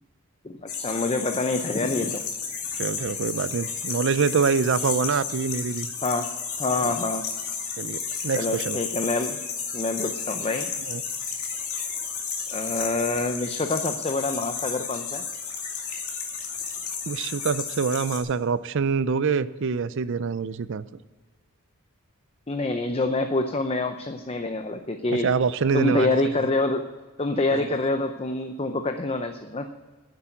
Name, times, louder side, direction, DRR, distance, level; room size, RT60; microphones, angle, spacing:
voice 1, 0.4-2.2 6.0-6.3 6.6-7.2 8.4-9.4 9.7-10.7 12.0-12.1 12.5-15.2 22.5-25.3 25.7-26.9 27.2-29.7, left 2 dB, 25° left, 7 dB, 0.6 m, -26 dB
sound 1, 0.7-18.2, left 6 dB, 70° left, 2.4 m, -32 dB
voice 2, 2.8-5.9 6.8-6.9 7.8-8.8 10.9-11.0 17.1-20.9 25.2-26.2 27.5-27.7, right 5 dB, 55° right, 15 dB, 0.5 m, -25 dB
10.5 x 8.1 x 9.0 m, 1.3 s
head